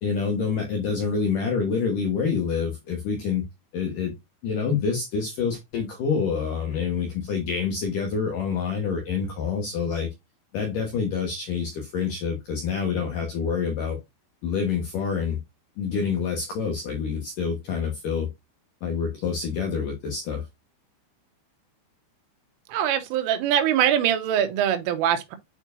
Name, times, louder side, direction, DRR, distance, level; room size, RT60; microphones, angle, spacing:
voice 1, 0.0-3.4 3.7-4.1 4.4-10.1 10.5-14.0 14.4-15.4 15.8-18.3 18.8-20.4, left 6 dB, 70° left, 2.0 m, -27 dB
voice 2, 22.7-25.4, right 10 dB, 90° right, 3.5 m, -23 dB
8.7 x 4.6 x 2.6 m
omnidirectional pair, 5.7 m